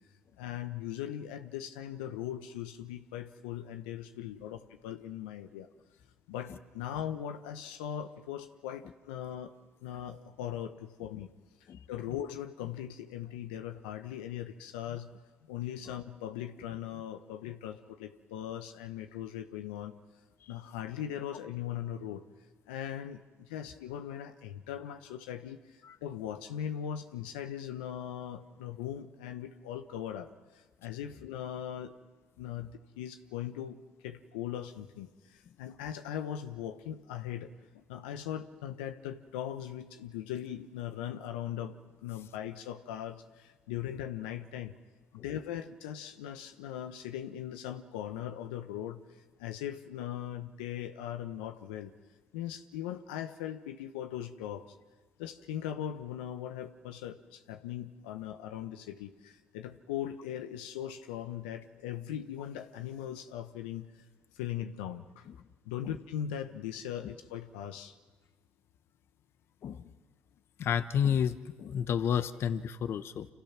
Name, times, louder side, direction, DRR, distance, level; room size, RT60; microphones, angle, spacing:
voice 1, 0.4-5.7 6.3-9.5 9.8-11.3 11.9-15.1 15.5-19.9 20.5-22.2 22.7-25.6 26.0-30.3 30.8-31.9 32.4-33.8 34.0-35.1 35.6-41.7 42.0-44.7 45.1-49.0 49.4-51.9 52.3-54.7 55.2-63.9 64.3-65.3 65.6-67.9, left 10 dB, 90° left, 8 dB, 1.2 m, -39 dB
voice 2, 70.6-73.3, left 8 dB, 55° left, 11 dB, 1.2 m, -30 dB
28.5 x 27.0 x 6.0 m, 1.4 s
supercardioid pair, 70°, 5 cm